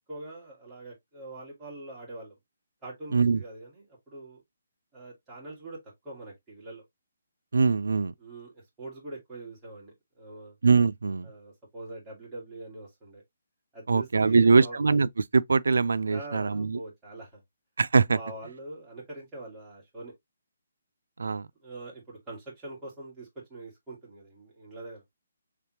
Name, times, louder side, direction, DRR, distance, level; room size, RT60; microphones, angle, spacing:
voice 1, 0.1-2.3 2.8-4.4 4.9-6.9 8.2-10.6 11.2-13.2 13.7-14.8 16.1-17.4 18.1-20.1 21.6-25.0, right 2 dB, 10° right, 1.9 m, -43 dB
voice 2, 7.5-8.1 10.6-11.3 13.9-16.8 17.8-18.2 21.2-21.5, right 4 dB, 85° right, 0.3 m, -22 dB
3.5 x 3.4 x 2.8 m
hypercardioid pair, 165°, 0 cm